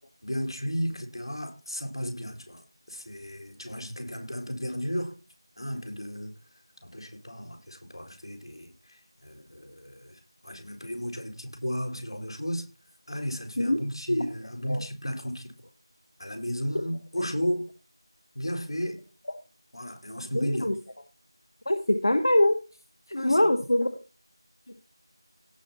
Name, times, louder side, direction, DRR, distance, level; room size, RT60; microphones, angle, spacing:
voice 1, 0.2-5.2 5.6-6.3 6.8-12.7 13.1-15.7 16.2-17.7 18.3-19.0 19.7-20.7 23.1-23.6, equal, 75° left, 4.6 m, -34 dB
voice 2, 20.3-20.7 21.6-22.6 23.1-23.9, left 1 dB, 55° left, 1.5 m, -23 dB
17.5 x 6.1 x 4.4 m
figure-of-eight pair, 180°, 3 cm